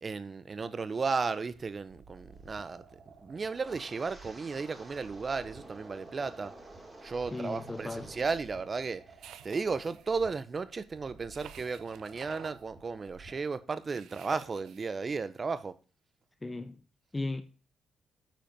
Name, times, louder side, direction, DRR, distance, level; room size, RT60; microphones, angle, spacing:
voice 1, 0.0-2.8 3.2-6.5 7.0-9.0 9.4-15.7, right 4 dB, 35° right, 0.8 m, -34 dB
sound 1, 1.5-13.5, right 4 dB, 55° right, 2.3 m, -55 dB
Wind, 3.6-8.4 8.7-9.1 9.6-9.9, right 1 dB, 15° right, 2.6 m, -51 dB
voice 2, 7.3-8.1 16.4-16.8 17.1-17.4, left 2 dB, 20° left, 0.7 m, -36 dB
sound 2, 9.2-10.1 11.3-12.6 13.9-14.9, right 10 dB, 80° right, 0.6 m, -50 dB
9.1 x 5.1 x 5.3 m
cardioid pair, 90°, 0 cm